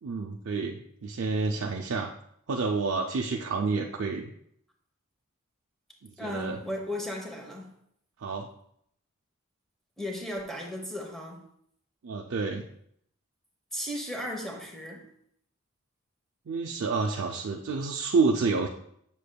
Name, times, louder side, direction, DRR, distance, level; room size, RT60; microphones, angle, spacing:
voice 1, 0.0-2.1 2.5-4.3 6.0-6.6 8.2-8.5 12.0-12.7 16.5-18.7, right 4 dB, 60° right, 1 dB, 0.4 m, -29 dB
voice 2, 6.2-7.7 10.0-11.4 13.7-15.0, left 1 dB, ahead, 1 dB, 0.9 m, -35 dB
7.5 x 6.7 x 2.2 m, 0.70 s
head